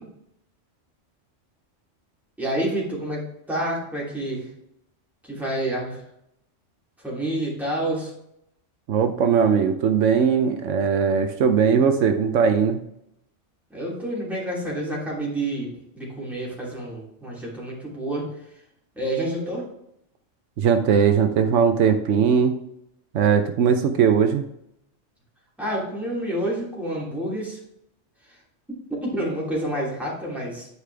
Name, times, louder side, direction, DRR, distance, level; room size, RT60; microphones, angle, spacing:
voice 1, 2.4-3.2 3.5-4.5 5.2-6.0 7.0-8.1 13.7-18.3 18.9-19.7 25.6-27.6 28.2-28.4 29.0-30.7, right 1 dB, ahead, -6 dB, 2.8 m, -28 dB
voice 2, 8.9-12.8 20.6-22.6 23.1-24.4, right 7 dB, 80° right, 7 dB, 1.0 m, -19 dB
9.6 x 4.9 x 3.4 m, 0.78 s
omnidirectional pair, 1.2 m